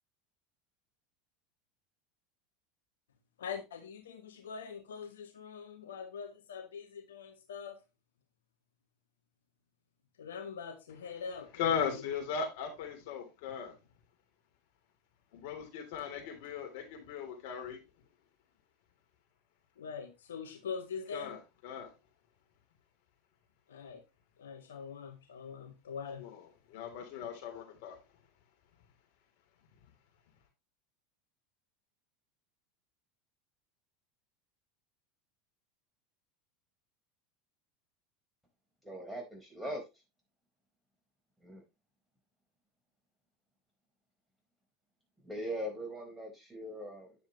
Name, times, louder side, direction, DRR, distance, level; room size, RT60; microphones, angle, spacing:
voice 1, 3.4-7.8 10.2-12.1 16.1-16.4 19.8-21.4 23.7-24.0 24.4-26.2, left 6 dB, 80° left, 1.2 m, -43 dB
voice 2, 11.6-13.7 15.3-17.8 21.1-21.4 21.6-21.9 26.2-26.4 26.7-28.0, left 7 dB, 65° left, 3.1 m, -37 dB
voice 3, 38.8-39.8 41.4-41.6 45.2-47.1, equal, ahead, 4.4 m, -40 dB
9.5 x 7.1 x 3.0 m
hypercardioid pair, 85°, 0 cm